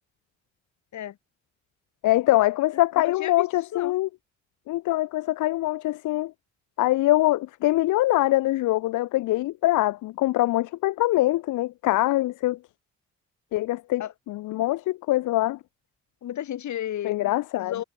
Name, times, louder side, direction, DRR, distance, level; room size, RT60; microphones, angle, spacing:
voice 1, 2.0-4.1 4.7-6.3 6.8-12.6 13.5-15.6 17.0-17.7, left 17 dB, 85° left, 1.1 m, -23 dB
voice 2, 3.1-4.0 14.0-14.1 16.2-17.8, left 11 dB, 70° left, 3.9 m, -33 dB
cardioid pair, 90°, 30 cm